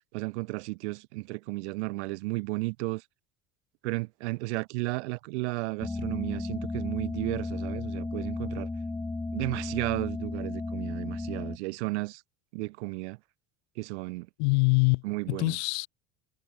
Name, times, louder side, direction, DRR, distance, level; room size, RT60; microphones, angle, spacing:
voice 1, 0.1-3.0 3.8-8.7 9.3-12.2 12.5-13.2 13.8-14.3 15.0-15.6, right 24 dB, 90° right, 1.1 m, -33 dB
sound 1, 5.8-11.6, left 3 dB, 10° left, 0.7 m, -34 dB
voice 2, 14.4-15.9, left 34 dB, 80° left, 4.4 m, -25 dB
supercardioid pair, 120°, 33 cm